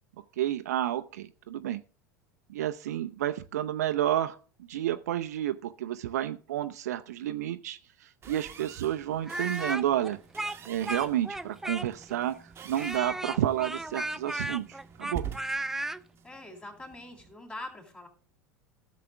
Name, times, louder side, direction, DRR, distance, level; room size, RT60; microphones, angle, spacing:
voice 1, 0.4-1.8 2.5-4.4 4.7-10.2 10.7-15.2, right 12 dB, 60° right, 11 dB, 0.5 m, -30 dB
sound 1, 8.2-17.3, right 7 dB, 25° right, 1.0 m, -46 dB
Speech, 9.2-12.1 12.7-16.0, right 2 dB, 5° right, 0.4 m, -34 dB
voice 2, 16.2-18.1, left 1 dB, 15° left, 4 dB, 3.3 m, -43 dB
15.5 x 6.7 x 3.5 m, 0.39 s
figure-of-eight pair, 80°, 10 cm